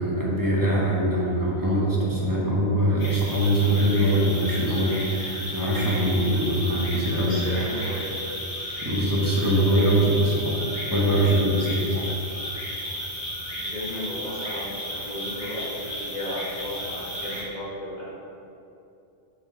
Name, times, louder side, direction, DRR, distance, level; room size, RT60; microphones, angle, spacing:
voice 1, 0.0-7.5 8.8-10.6 10.9-12.0, right 1 dB, 20° right, -5 dB, 1.3 m, -23 dB
sound 1, 3.0-17.4, equal, 90° left, 2.0 m, -34 dB
voice 2, 4.1-4.8 7.3-8.2 13.5-18.1, left 1 dB, 40° left, -7 dB, 1.8 m, -35 dB
7.5 x 5.0 x 4.3 m, 2.7 s
omnidirectional pair, 1.1 m